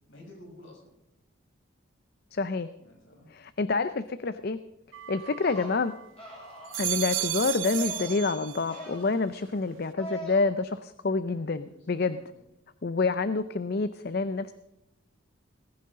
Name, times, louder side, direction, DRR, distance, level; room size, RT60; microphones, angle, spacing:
voice 1, 0.1-0.9 2.8-3.3 11.7-12.4, left 1 dB, 65° left, -1 dB, 6.7 m, -51 dB
voice 2, 2.3-2.7 3.3-4.6 5.1-5.9 6.7-12.2 12.8-14.5, left 3 dB, 50° left, 12 dB, 0.5 m, -28 dB
sound 1, 4.9-6.1 6.5-8.9 9.3-9.9, right 14 dB, 70° right, 0.8 m, -34 dB
sound 2, 5.3-5.8 6.2-6.9 7.6-8.2 8.6-9.1 10.0-10.4, equal, 30° left, 5.5 m, -41 dB
18.5 x 16.0 x 3.8 m, 0.89 s
head